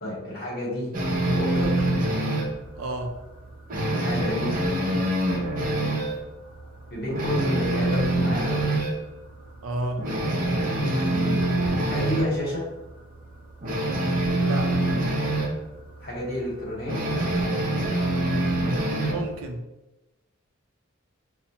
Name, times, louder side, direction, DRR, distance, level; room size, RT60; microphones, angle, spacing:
voice 1, 0.0-0.9 1.3-1.9 3.9-4.6 6.9-8.7 11.0-11.5 11.9-12.6 16.0-17.0, left 1 dB, 50° left, -4 dB, 1.0 m, -31 dB
sound 1, 0.9-2.6 3.0-3.1 3.5-6.2 6.6-6.7 7.1-9.0 9.5-9.6 10.0-12.3 13.6-15.5 16.9-19.3, right 1 dB, 40° right, 0.6 m, -25 dB
voice 2, 2.8-3.2 9.6-10.1 14.4-14.7 18.8-19.7, right 2 dB, 85° right, 4 dB, 0.5 m, -31 dB
5.6 x 2.1 x 2.8 m, 1.0 s
head